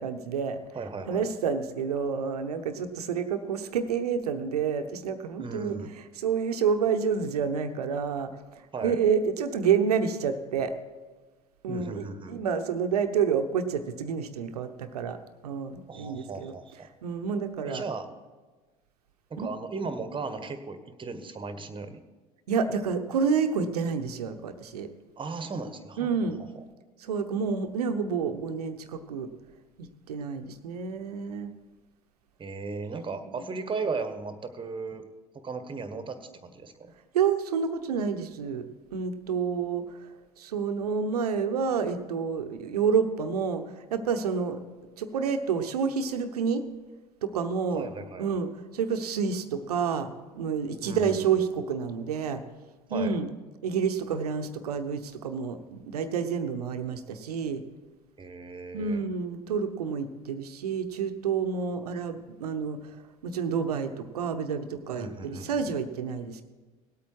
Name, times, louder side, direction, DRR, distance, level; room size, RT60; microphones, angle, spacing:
voice 1, 0.0-0.6 1.1-5.8 6.2-10.8 11.6-15.2 15.4-16.5 17.0-17.8 19.4-19.5 22.5-24.9 26.0-26.4 27.0-29.3 29.8-31.5 33.2-33.3 37.1-38.6 38.9-40.1 40.4-43.6 43.9-44.6 45.0-46.7 47.2-47.8 48.2-50.1 50.3-52.4 52.9-53.3 53.6-57.6 58.7-62.8 63.2-66.4, right 6 dB, 80° right, 8 dB, 0.9 m, -29 dB
voice 2, 0.7-1.3 5.4-5.9 8.7-9.0 11.7-12.4 15.9-16.9 17.6-18.1 19.3-22.0 25.2-26.3 32.4-35.0 35.3-36.9 47.7-48.3 50.8-51.3 52.9-53.1 58.2-59.0 64.9-65.7, right 4 dB, 25° right, 10 dB, 1.3 m, -36 dB
18.0 x 8.5 x 4.6 m, 1.3 s
hypercardioid pair, 65°, 19 cm